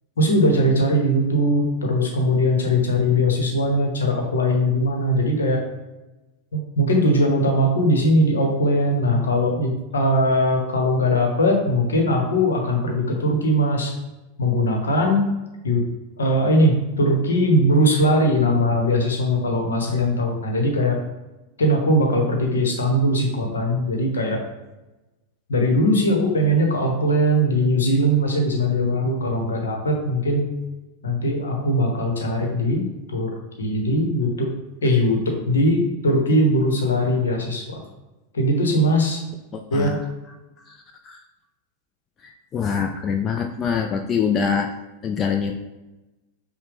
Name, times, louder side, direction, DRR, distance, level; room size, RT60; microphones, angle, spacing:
voice 1, 0.2-5.6 6.5-13.9 14.4-15.3 15.6-15.8 16.2-21.0 21.6-24.4 25.5-30.5 31.0-33.3 33.6-34.5 34.8-37.8 38.3-39.2 39.7-40.0, equal, 70° left, 2 dB, 0.9 m, -20 dB
voice 2, 39.5-40.0 40.6-41.2 42.2-44.7 45.0-45.5, left 6 dB, 25° left, 5 dB, 0.3 m, -25 dB
5.5 x 2.1 x 3.4 m, 1.1 s
figure-of-eight pair, 90°, 0 cm